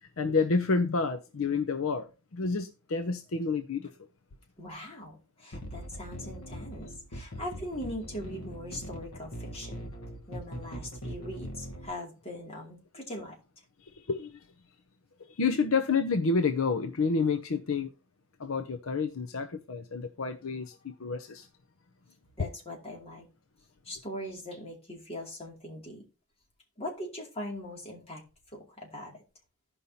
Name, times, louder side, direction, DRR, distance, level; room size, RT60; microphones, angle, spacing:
voice 1, 0.2-3.9 14.1-14.3 15.4-17.9 18.4-21.5 22.4-22.5, left 4 dB, 65° left, 0.6 m, -29 dB
voice 2, 4.6-9.9 10.3-13.3 22.4-23.2 23.9-26.0 26.8-28.2 28.5-29.1, left 1 dB, 30° left, 2.4 m, -41 dB
sound 1, 5.5-11.9, equal, 85° left, 1.3 m, -41 dB
16.0 x 5.4 x 2.8 m
head